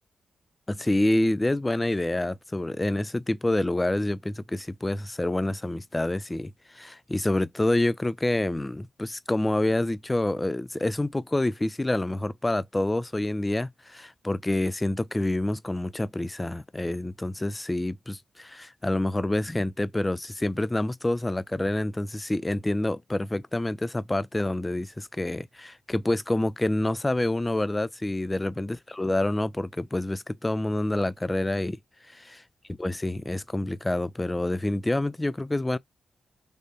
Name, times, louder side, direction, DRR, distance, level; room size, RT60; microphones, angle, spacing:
voice 1, 0.7-31.8 32.1-32.4 32.8-35.8, left 1 dB, 20° left, 0.4 m, -27 dB
3.4 x 2.6 x 2.7 m
supercardioid pair, 45°, 0 cm